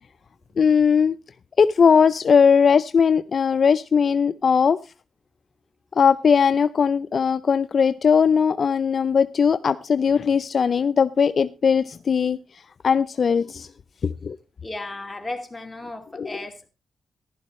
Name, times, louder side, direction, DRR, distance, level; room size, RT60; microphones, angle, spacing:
voice 1, 0.6-1.2 1.6-4.8 6.0-12.4 12.8-13.7 14.0-14.4 16.2-16.3, left 6 dB, 55° left, 0.5 m, -19 dB
voice 2, 14.6-16.7, left 2 dB, 20° left, 2.5 m, -35 dB
15.0 x 12.0 x 3.1 m
cardioid pair, 90°, 0 cm